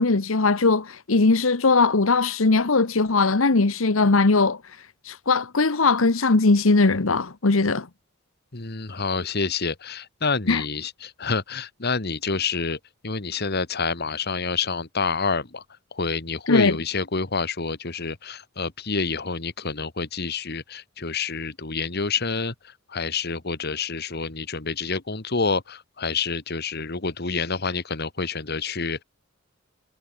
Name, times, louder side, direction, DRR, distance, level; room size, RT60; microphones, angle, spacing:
voice 1, 0.0-4.6 5.0-7.9 10.5-10.6 16.5-16.8, left 3 dB, 80° left, 1.1 m, -20 dB
voice 2, 8.5-12.8 13.0-15.6 15.9-29.0, left 4 dB, 50° left, 1.8 m, -28 dB
head